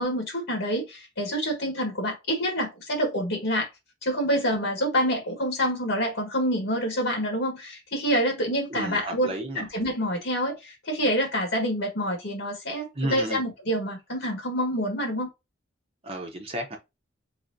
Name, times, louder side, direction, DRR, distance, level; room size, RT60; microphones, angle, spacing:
voice 1, 0.0-3.7 4.0-15.3, equal, 70° left, 1.6 m, -27 dB
voice 2, 8.7-9.6 13.0-13.4 16.0-16.8, right 1 dB, 30° right, 0.9 m, -32 dB
4.1 x 3.8 x 2.7 m
head